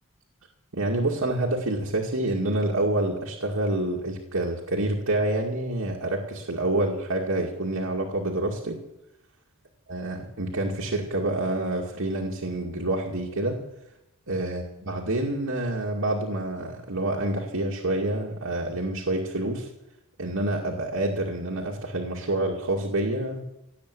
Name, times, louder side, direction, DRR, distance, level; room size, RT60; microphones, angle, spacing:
voice 1, 0.7-8.8 9.9-13.6 14.3-19.7 20.2-23.4, right 1 dB, 70° right, -2 dB, 2.3 m, -27 dB
17.5 x 8.6 x 8.3 m, 0.87 s
head